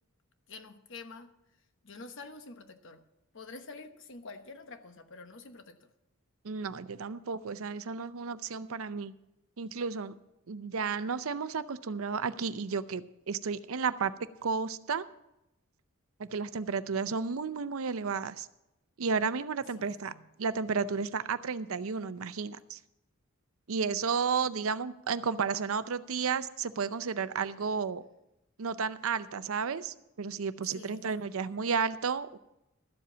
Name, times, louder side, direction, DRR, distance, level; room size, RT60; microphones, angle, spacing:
voice 1, 0.5-1.3 1.8-3.0 3.3-5.8 19.8-20.3 30.7-31.3, left 3 dB, 60° left, 8 dB, 1.1 m, -47 dB
voice 2, 6.4-9.1 9.6-10.2 10.5-14.1 14.4-15.0 16.2-18.5 19.0-20.1 20.4-22.8 23.7-28.0 28.6-32.4, right 5 dB, 70° right, 14 dB, 0.6 m, -32 dB
13.0 x 7.7 x 6.8 m, 0.89 s
head